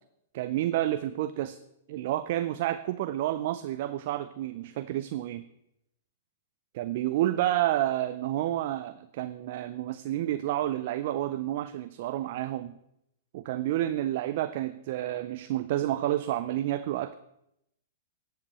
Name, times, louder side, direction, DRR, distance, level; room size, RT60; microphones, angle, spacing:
voice 1, 0.3-1.6 1.9-5.4 6.7-12.7 13.3-17.1, right 13 dB, 60° right, 12 dB, 0.5 m, -30 dB
12.0 x 7.7 x 4.2 m, 0.80 s
hypercardioid pair, 120°, 0 cm